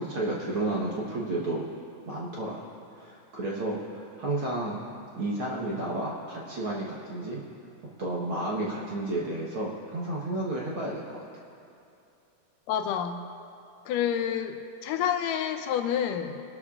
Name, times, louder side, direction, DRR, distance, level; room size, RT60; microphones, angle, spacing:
voice 1, 0.0-1.7 2.0-2.6 2.9-4.8 5.2-7.4 8.0-11.2, right 2 dB, 55° right, -5 dB, 1.6 m, -31 dB
voice 2, 12.7-13.2 13.9-14.6 14.8-16.4, left 9 dB, 80° left, 7 dB, 2.2 m, -28 dB
23.0 x 12.5 x 2.5 m, 2.6 s
omnidirectional pair, 3.8 m